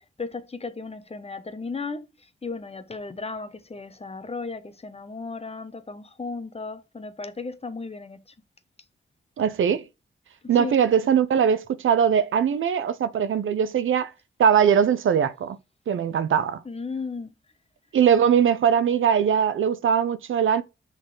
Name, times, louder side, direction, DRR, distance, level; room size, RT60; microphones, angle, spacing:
voice 1, 0.2-2.1 2.4-8.2 10.4-10.8 16.6-17.3, left 4 dB, 30° left, 1.0 m, -35 dB
voice 2, 9.4-9.8 10.5-14.1 14.4-15.6 15.9-16.6 17.9-20.6, right 8 dB, 75° right, 0.6 m, -21 dB
6.4 x 4.1 x 4.7 m
cardioid pair, 60°, 21 cm